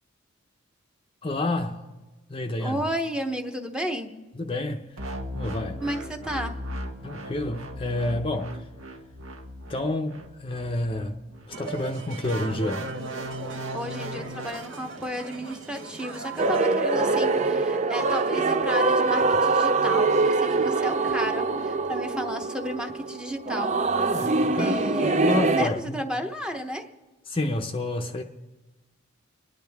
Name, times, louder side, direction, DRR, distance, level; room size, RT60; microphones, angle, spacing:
voice 1, 1.2-1.9 2.3-2.8 4.3-5.1 5.3-5.8 7.0-8.6 9.7-11.2 11.5-12.9 24.1-24.8 25.1-26.0 27.3-28.2, left 2 dB, 25° left, 0.6 m, -29 dB
voice 2, 2.6-4.1 5.8-6.6 13.7-23.8 24.3-25.2 25.5-26.9, equal, 5° right, 0.8 m, -32 dB
sound 1, 5.0-11.5 12.2-14.5, equal, 80° right, 1.4 m, -37 dB
sound 2, 11.5-16.6, right 3 dB, 60° right, 1.3 m, -39 dB
sound 3, 16.4-25.7, right 3 dB, 35° right, 0.5 m, -23 dB
30.0 x 10.5 x 3.5 m
head